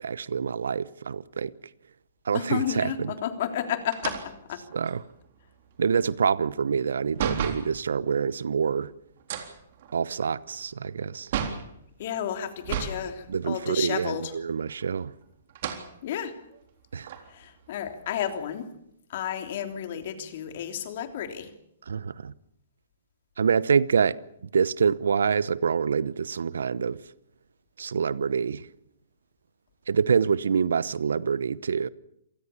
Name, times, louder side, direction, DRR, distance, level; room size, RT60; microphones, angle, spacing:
voice 1, 0.0-1.5 2.2-3.1 4.7-5.0 5.8-8.9 9.9-11.3 13.3-15.1 16.9-17.1 21.9-22.3 23.4-24.2 24.5-27.0 27.8-28.7 29.9-31.9, right 6 dB, 75° right, 0.9 m, -26 dB
voice 2, 2.3-4.6 12.0-14.4 16.0-16.4 17.3-18.7 19.1-21.5, left 9 dB, 55° left, 3.3 m, -32 dB
sound 1, 3.9-7.7 9.2-11.7 12.6-13.1 13.4-13.5 14.6-15.1 15.5-15.9 16.5-16.6 17.0-18.4, right 8 dB, 55° right, 3.7 m, -34 dB
27.0 x 19.0 x 7.1 m
hypercardioid pair, 130°, 0 cm